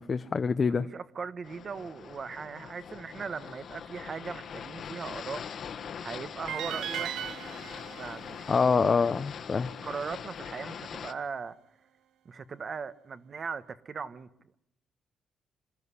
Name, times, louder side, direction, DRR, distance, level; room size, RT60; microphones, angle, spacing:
voice 1, 0.0-0.9 8.5-9.7, left 5 dB, 35° left, 10 dB, 0.8 m, -25 dB
voice 2, 0.8-5.5 6.0-7.2 7.9-8.9 9.8-11.6 12.2-14.3, right 5 dB, 40° right, 14 dB, 1.2 m, -39 dB
sound 1, 1.4-11.1, left 7 dB, 55° left, 1.6 m, -42 dB
sound 2, 6.5-9.6, right 11 dB, 90° right, 1.0 m, -39 dB
25.5 x 13.5 x 9.8 m, 0.81 s
cardioid pair, 120°, 0 cm